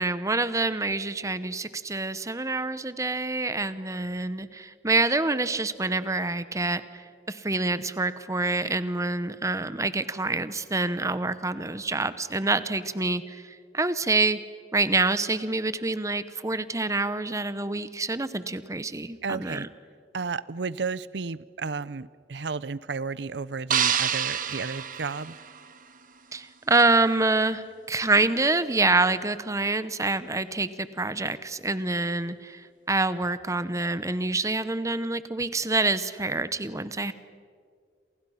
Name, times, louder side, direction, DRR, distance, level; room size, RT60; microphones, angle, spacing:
voice 1, 0.0-14.4 14.7-19.7 26.3-37.1, right 3 dB, 20° right, 14 dB, 0.9 m, -26 dB
voice 2, 19.2-19.7 20.1-25.4, right 4 dB, 80° right, 18 dB, 0.7 m, -33 dB
sound 1, 23.7-26.0, right 8 dB, 50° right, 1.3 m, -28 dB
28.0 x 28.0 x 5.8 m, 2.1 s
head